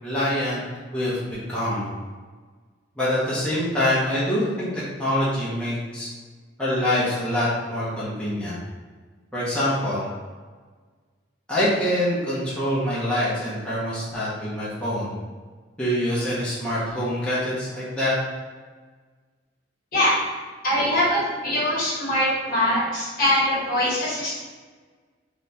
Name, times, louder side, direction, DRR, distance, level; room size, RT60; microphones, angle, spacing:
voice 1, 0.0-0.6 0.9-1.9 3.0-6.1 6.6-8.6 9.3-10.1 11.5-15.1 15.8-18.1, left 1 dB, 5° left, -10 dB, 1.0 m, -25 dB
voice 2, 20.6-24.4, left 1 dB, 50° left, -6 dB, 1.5 m, -22 dB
3.8 x 3.4 x 2.8 m, 1.5 s
head